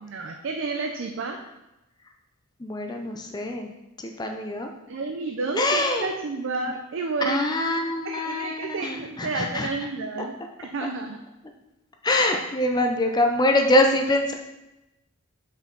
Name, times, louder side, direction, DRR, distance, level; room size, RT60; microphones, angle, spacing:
voice 1, 0.0-1.4 4.9-7.6 8.1-11.2, right 3 dB, 60° right, 4 dB, 0.5 m, -31 dB
voice 2, 2.6-3.7 4.0-4.8 5.5-6.1 6.7-6.8 7.3-9.7 12.0-14.3, left 1 dB, 20° left, 4 dB, 0.5 m, -24 dB
5.5 x 5.2 x 3.9 m, 0.96 s
head